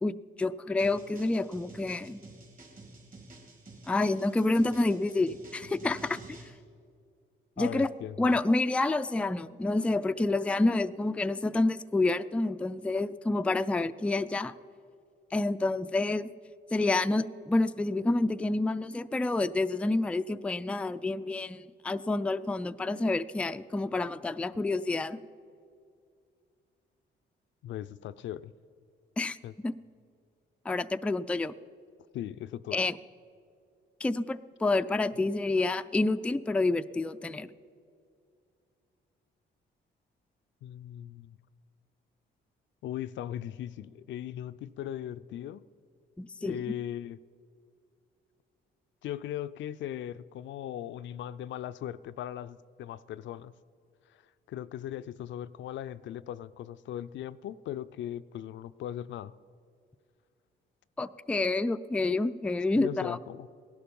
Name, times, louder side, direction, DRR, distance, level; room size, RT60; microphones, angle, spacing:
voice 1, 0.0-2.2 3.9-6.4 7.6-7.9 8.2-14.5 15.3-16.3 16.7-25.2 29.2-29.7 30.7-31.5 32.7-33.0 34.0-37.5 46.2-46.7 61.0-63.2, left 2 dB, 5° left, 10 dB, 0.3 m, -28 dB
sound 1, 0.8-6.5, right 2 dB, 40° right, 2.8 m, -50 dB
voice 2, 7.6-8.4 27.6-28.5 29.4-29.5 32.1-32.8 40.6-41.4 42.8-45.6 46.4-47.2 49.0-53.5 54.5-59.3 62.7-63.5, left 11 dB, 70° left, 14 dB, 0.4 m, -38 dB
17.0 x 11.5 x 5.4 m, 2.3 s
cardioid pair, 90°, 20 cm